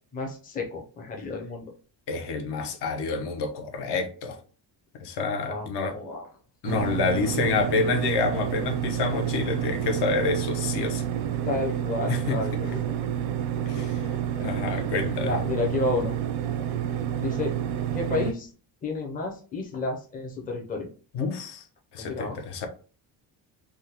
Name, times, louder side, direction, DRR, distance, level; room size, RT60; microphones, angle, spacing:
voice 1, 0.1-1.7 5.5-6.3 11.4-12.8 14.3-14.6 15.2-16.1 17.2-17.6 17.9-18.5 18.8-20.9 22.0-22.4, left 3 dB, 20° left, 0 dB, 0.5 m, -31 dB
voice 2, 2.1-4.4 5.0-6.0 6.6-11.1 12.1-12.4 13.7-14.1 14.4-15.3 21.1-21.6 21.9-22.7, left 4 dB, 60° left, 6 dB, 0.7 m, -28 dB
sound 1, 6.6-18.3, right 10 dB, 85° right, 0.6 m, -29 dB
3.5 x 2.1 x 2.8 m, 0.39 s
cardioid pair, 155°, 45 cm